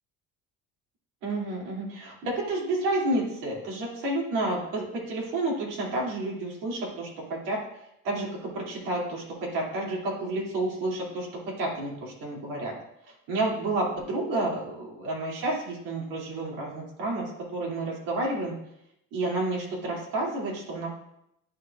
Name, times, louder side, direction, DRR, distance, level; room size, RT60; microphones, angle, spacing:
voice 1, 1.2-11.3 11.6-12.7 13.3-18.5 19.1-20.9, right 2 dB, 85° right, -3 dB, 2.4 m, -30 dB
11.5 x 4.8 x 2.3 m, 0.79 s
cardioid pair, 165°, 30 cm